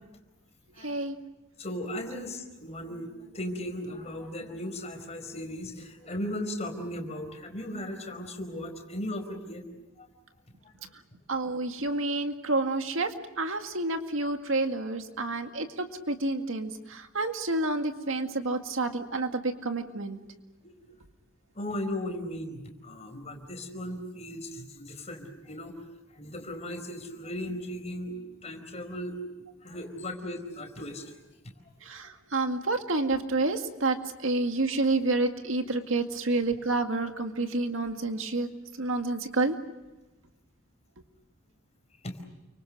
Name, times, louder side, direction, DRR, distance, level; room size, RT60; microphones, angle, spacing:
voice 1, 0.8-1.2 11.3-20.2 31.9-38.5 38.8-39.6, right 2 dB, 70° right, 6 dB, 2.0 m, -29 dB
voice 2, 1.6-10.1 20.6-20.7 21.5-25.7 26.2-29.2 29.6-31.1 42.0-42.1, left 1 dB, 35° left, 4 dB, 4.7 m, -37 dB
29.5 x 25.0 x 6.4 m, 1.1 s
head